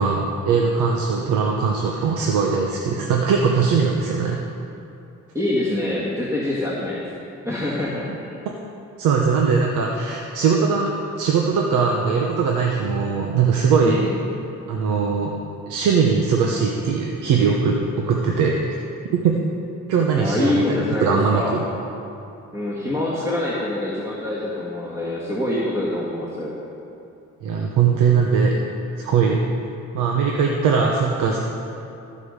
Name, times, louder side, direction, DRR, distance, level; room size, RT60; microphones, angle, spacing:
voice 1, 0.0-4.4 8.1-8.2 9.0-14.0 14.7-15.3 15.7-18.6 19.2-19.3 19.9-20.6 21.0-21.6 27.4-28.6 29.0-29.4 29.9-31.4, right 5 dB, 85° right, 0 dB, 1.0 m, -20 dB
voice 2, 5.3-8.4 13.8-14.1 20.1-21.6 22.5-26.5, left 1 dB, 10° right, -7 dB, 1.9 m, -25 dB
14.0 x 5.4 x 6.5 m, 2.7 s
cardioid pair, 90°, 30 cm